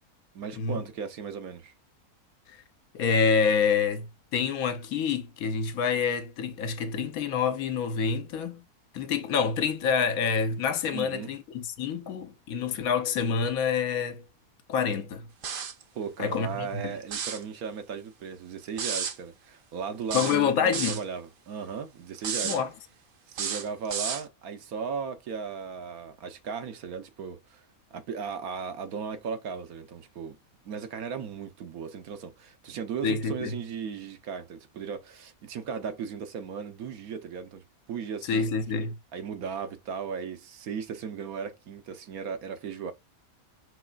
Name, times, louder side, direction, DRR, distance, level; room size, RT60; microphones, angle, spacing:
voice 1, 0.3-1.7 10.9-11.3 15.9-22.6 23.3-27.6 27.9-30.4 30.6-38.5 39.1-42.9, right 6 dB, 80° right, 1.3 m, -36 dB
voice 2, 2.9-8.6 8.9-14.2 14.7-15.3 16.2-16.9 20.1-21.0 22.4-22.7 33.0-33.6 38.3-39.0, left 6 dB, 75° left, 1.2 m, -27 dB
sound 1, 15.4-15.8 17.0-17.4 18.8-19.2 20.1-21.0 22.2-22.6 23.3-24.2, right 7 dB, 55° right, 0.6 m, -32 dB
5.7 x 3.1 x 2.4 m
omnidirectional pair, 1.5 m